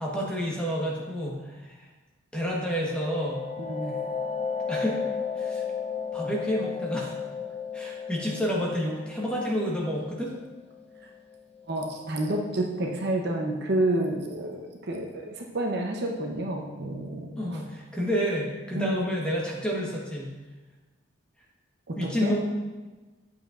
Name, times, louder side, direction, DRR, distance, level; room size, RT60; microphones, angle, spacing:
voice 1, 0.0-1.9 2.3-3.4 4.7-5.0 5.4-5.6 6.1-7.2 7.7-10.4 17.4-20.3 22.0-22.4, equal, 5° left, -4 dB, 1.3 m, -29 dB
sound 1, 2.6-12.0, left 6 dB, 30° left, 0.5 m, -34 dB
voice 2, 3.7-4.0 11.7-17.6 18.7-19.0 21.9-22.3, right 1 dB, 55° right, 1 dB, 0.8 m, -29 dB
8.6 x 7.2 x 2.5 m, 1.2 s
head